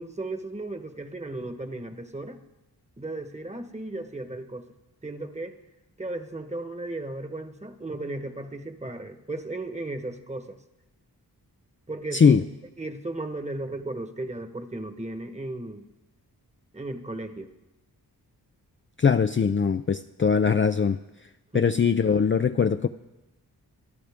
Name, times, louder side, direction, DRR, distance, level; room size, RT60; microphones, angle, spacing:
voice 1, 0.0-2.4 3.0-4.6 5.0-5.6 6.0-10.6 11.9-12.4 12.8-15.9 16.7-17.5 21.5-21.7, right 2 dB, 15° right, 7 dB, 1.3 m, -35 dB
voice 2, 19.0-21.0 21.5-22.9, left 6 dB, 30° left, 7 dB, 0.5 m, -21 dB
26.0 x 11.0 x 3.6 m, 0.99 s
cardioid pair, 65°, 39 cm